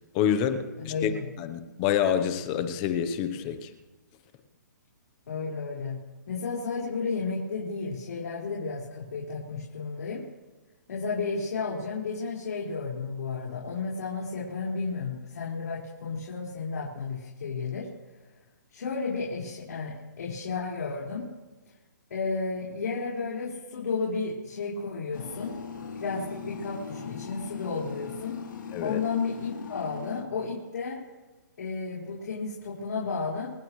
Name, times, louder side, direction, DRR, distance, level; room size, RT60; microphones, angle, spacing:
voice 1, 0.1-1.1 1.4-3.7 28.7-29.0, left 9 dB, 20° left, 9 dB, 0.9 m, -27 dB
voice 2, 0.8-1.3 5.3-6.0 6.3-10.2 10.9-17.9 18.7-21.3 22.1-25.5 26.0-28.3 28.8-31.0 31.6-33.5, left 4 dB, 60° left, -7 dB, 5.0 m, -32 dB
sound 1, 25.1-30.2, left 6 dB, 85° left, 3.2 m, -39 dB
28.5 x 15.5 x 3.2 m, 1.2 s
hypercardioid pair, 170°, 10 cm